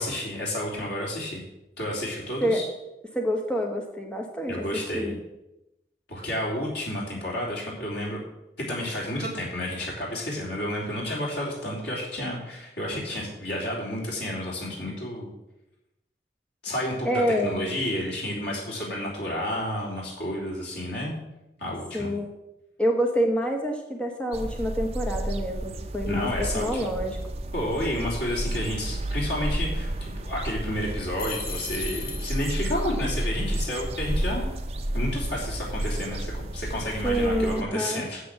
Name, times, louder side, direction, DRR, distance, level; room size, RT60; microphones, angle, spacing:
voice 1, 0.0-1.4 1.8-2.6 4.5-5.1 6.1-8.2 8.6-15.3 16.6-21.1 21.6-22.1 26.1-26.9 27.5-34.5 34.9-38.2, left 1 dB, 80° left, -4 dB, 3.2 m, -31 dB
voice 2, 3.1-4.7 4.9-5.2 17.0-17.7 21.9-22.3 22.8-27.2 37.0-38.0, equal, 5° left, 2 dB, 1.1 m, -27 dB
sound 1, 24.3-37.6, right 1 dB, 35° right, 0.8 m, -31 dB
sound 2, 31.2-32.9, left 5 dB, 55° left, 1.6 m, -37 dB
8.4 x 7.8 x 7.5 m, 0.93 s
head